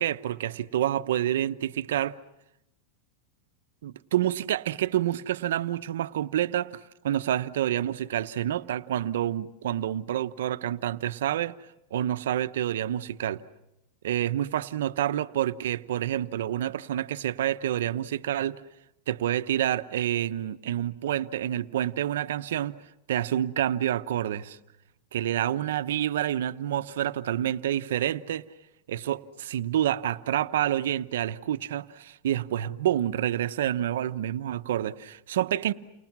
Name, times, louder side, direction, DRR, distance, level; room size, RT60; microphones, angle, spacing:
voice 1, 0.0-2.2 3.8-11.6 11.9-13.4 14.0-18.6 19.1-22.7 23.1-24.6 25.1-28.4 28.9-35.7, right 11 dB, 80° right, 0.9 m, -28 dB
29.5 x 29.0 x 6.1 m
supercardioid pair, 130°, 0 cm